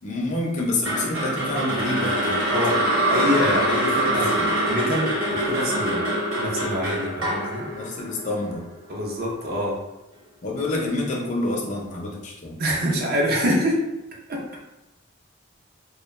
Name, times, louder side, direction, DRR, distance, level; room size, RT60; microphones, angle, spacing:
voice 1, 0.0-2.9 4.1-4.5 7.7-8.7 10.4-12.6, left 2 dB, 40° left, -2 dB, 0.5 m, -28 dB
sound 1, 0.8-9.0, right 1 dB, 85° right, 0.8 m, -24 dB
voice 2, 3.1-4.3 4.7-6.1 6.4-7.7 8.9-9.8 12.6-13.8 14.3-14.4, equal, 50° right, -2 dB, 0.6 m, -25 dB
2.3 x 2.2 x 3.0 m, 0.95 s
head